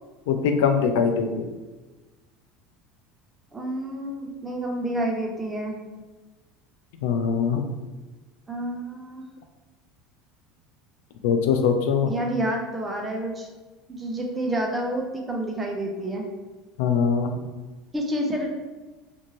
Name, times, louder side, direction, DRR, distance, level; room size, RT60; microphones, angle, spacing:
voice 1, 0.3-1.5 7.0-7.6 11.2-12.1 16.8-17.4, left 6 dB, 85° left, 6 dB, 0.4 m, -22 dB
voice 2, 3.5-5.8 8.5-9.3 12.1-13.5 13.9-16.3 17.9-18.5, right 1 dB, 15° right, 1 dB, 0.5 m, -29 dB
2.6 x 2.5 x 3.0 m, 1.2 s
supercardioid pair, 135°, 0 cm